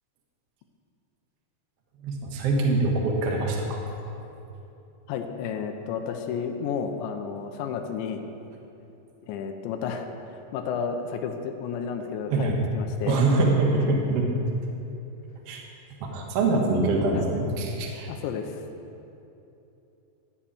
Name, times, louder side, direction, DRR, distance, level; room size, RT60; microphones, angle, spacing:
voice 1, 2.0-3.8 12.3-12.6 13.1-14.3 15.5-15.6 16.0-18.1, right 2 dB, 90° right, 0 dB, 1.3 m, -24 dB
voice 2, 5.1-8.2 9.3-13.2 17.1-17.2 18.1-18.6, left 6 dB, 90° left, 5 dB, 3.0 m, -32 dB
14.5 x 5.6 x 8.7 m, 2.9 s
omnidirectional pair, 5.2 m